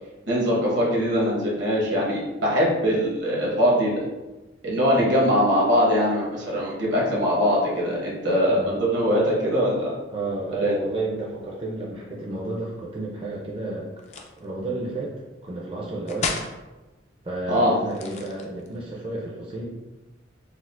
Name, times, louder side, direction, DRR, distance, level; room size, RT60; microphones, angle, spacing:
voice 1, 0.3-4.0 4.6-10.0 10.6-10.7 17.5-17.7, equal, 75° right, -5 dB, 1.1 m, -22 dB
voice 2, 8.5-8.8 10.1-13.9 14.4-15.1 15.4-16.5 17.2-19.7, right 2 dB, 30° right, -4 dB, 0.4 m, -31 dB
sound 1, 14.0-14.4 16.1-16.6 17.9-18.8, left 4 dB, 35° left, 0.3 m, -32 dB
4.3 x 2.0 x 2.4 m, 1.1 s
head